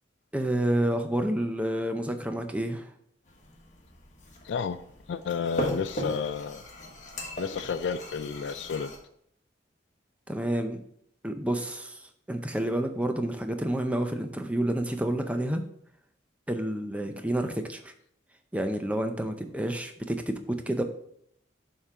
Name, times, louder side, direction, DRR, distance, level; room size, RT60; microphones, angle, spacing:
voice 1, 0.3-2.9 10.3-10.8 11.2-12.0 12.3-15.6 16.5-17.9 18.5-20.8, right 1 dB, 5° right, 6 dB, 0.5 m, -29 dB
sound 1, 3.3-9.0, equal, 40° left, 1.2 m, -38 dB
voice 2, 4.4-4.8 5.1-6.6 7.4-8.9, left 6 dB, 70° left, 12 dB, 0.4 m, -31 dB
6.9 x 3.7 x 4.7 m, 0.69 s
head